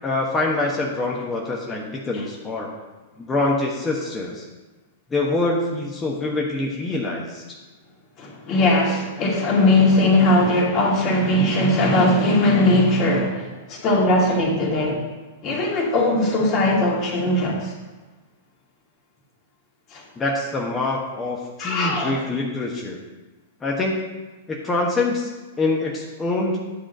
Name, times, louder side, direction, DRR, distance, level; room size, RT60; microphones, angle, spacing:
voice 1, 0.0-2.7 3.2-4.5 5.1-7.6 20.2-23.0 23.6-24.0 24.5-25.3 25.6-26.7, left 2 dB, 15° left, -2 dB, 1.2 m, -25 dB
voice 2, 8.2-15.0 15.4-17.7 19.9-20.0 21.6-22.2, left 1 dB, 40° left, -2 dB, 2.3 m, -19 dB
10.0 x 3.8 x 6.5 m, 1.2 s
hypercardioid pair, 110°, 0 cm